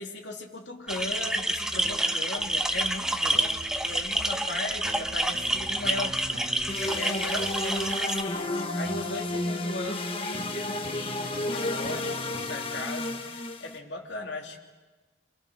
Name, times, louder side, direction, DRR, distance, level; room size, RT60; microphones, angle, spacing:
voice 1, 0.0-6.5 6.9-14.6, left 2 dB, 75° left, 1 dB, 3.2 m, -37 dB
sound 1, 0.9-8.2, right 1 dB, 5° right, 0.8 m, -28 dB
sound 2, 1.8-12.8, right 1 dB, 35° right, 1.8 m, -44 dB
sound 3, 6.7-13.8, left 2 dB, 30° left, 1.3 m, -32 dB
27.0 x 26.5 x 6.5 m, 1.3 s
head